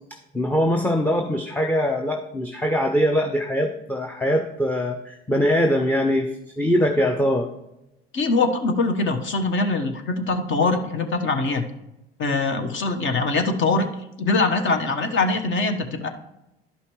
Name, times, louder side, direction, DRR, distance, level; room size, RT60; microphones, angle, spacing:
voice 1, 0.3-7.5, equal, 5° left, 5 dB, 0.7 m, -22 dB
voice 2, 8.1-11.6 12.2-13.9 14.2-16.1, left 3 dB, 40° left, 6 dB, 1.2 m, -23 dB
11.5 x 5.6 x 3.2 m, 0.89 s
hypercardioid pair, 70°, 31 cm